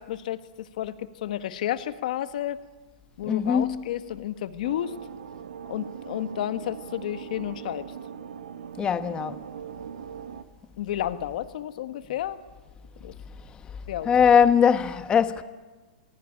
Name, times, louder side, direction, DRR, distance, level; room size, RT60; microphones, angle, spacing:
voice 1, 0.0-2.6 3.2-4.9 5.7-7.9 10.8-12.4 13.0-13.1 13.9-14.1, left 12 dB, 65° left, 1.7 m, -31 dB
voice 2, 3.3-3.8 8.8-9.4 13.5-13.6 14.0-15.4, left 7 dB, 20° left, 1.3 m, -21 dB
sound 1, 4.6-10.4, right 8 dB, 85° right, 1.7 m, -40 dB
28.5 x 20.5 x 10.0 m
hypercardioid pair, 135°, 5 cm